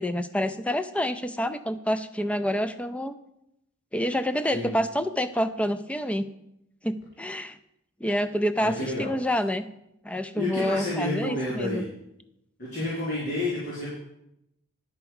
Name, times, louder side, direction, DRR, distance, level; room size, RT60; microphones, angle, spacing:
voice 1, 0.0-3.2 3.9-6.3 6.8-7.6 8.0-9.7 10.0-11.9, equal, 5° left, 11 dB, 0.3 m, -27 dB
voice 2, 8.6-9.1 10.4-11.8 12.6-13.9, left 1 dB, 45° left, -8 dB, 3.5 m, -30 dB
10.5 x 4.7 x 7.0 m, 0.82 s
head